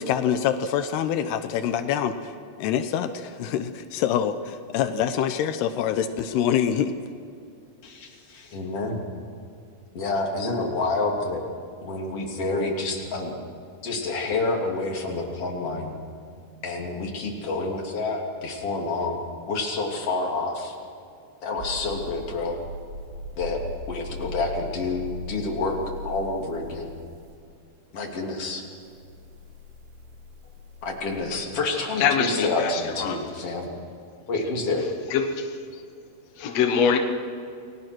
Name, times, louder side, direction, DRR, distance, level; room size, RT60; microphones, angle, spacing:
voice 1, 0.0-6.9, left 9 dB, 85° left, 9 dB, 3.0 m, -25 dB
voice 2, 7.8-9.0 9.9-11.4 11.8-13.4 13.8-16.0 16.6-19.2 19.5-20.8 21.4-22.6 23.4-25.8 26.0-26.9 27.9-28.6 30.8-33.7 34.3-34.8, left 3 dB, 40° left, 0 dB, 3.7 m, -28 dB
sound 1, 21.6-27.3 28.8-31.2, left 1 dB, 85° right, 3.8 m, -39 dB
voice 3, 32.0-33.2 35.1-35.8 36.4-37.0, left 6 dB, 60° left, 4 dB, 1.9 m, -24 dB
29.0 x 20.5 x 6.2 m, 2.4 s
omnidirectional pair, 4.6 m